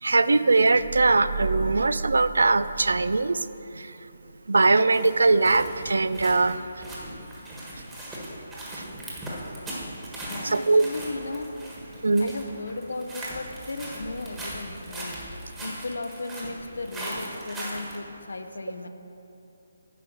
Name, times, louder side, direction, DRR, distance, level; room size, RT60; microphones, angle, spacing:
voice 1, 0.0-3.5 3.7-4.0 4.5-6.8 8.1-8.2 8.6-8.9 10.4-10.8 12.0-12.3, right 3 dB, 85° right, 14 dB, 0.3 m, -21 dB
sound 1, 0.8-3.7, right 4 dB, 55° right, 1.6 m, -34 dB
sound 2, 4.9-18.0, right 1 dB, 10° right, 1.4 m, -39 dB
voice 2, 10.2-11.5 12.2-18.9, left 2 dB, 80° left, 8 dB, 0.7 m, -36 dB
9.1 x 5.0 x 6.3 m, 2.9 s
hypercardioid pair, 160°, 0 cm